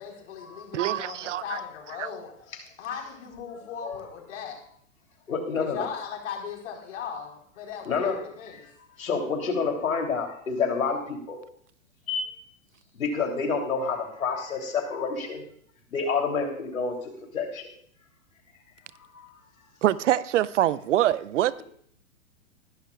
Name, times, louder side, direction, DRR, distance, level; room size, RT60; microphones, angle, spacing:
voice 1, 0.0-2.3 2.8-4.6 5.6-8.6, left 7 dB, 60° left, 4.6 m, -38 dB
voice 2, 0.7-1.6 19.8-21.6, right 13 dB, 60° right, 0.6 m, -24 dB
voice 3, 5.3-5.9 7.9-8.2 9.0-11.4 12.1-12.2 13.0-15.4 15.9-17.0 17.3-17.7 19.1-19.3, left 5 dB, 80° left, 3.4 m, -28 dB
20.0 x 11.5 x 2.4 m
hypercardioid pair, 115°, 41 cm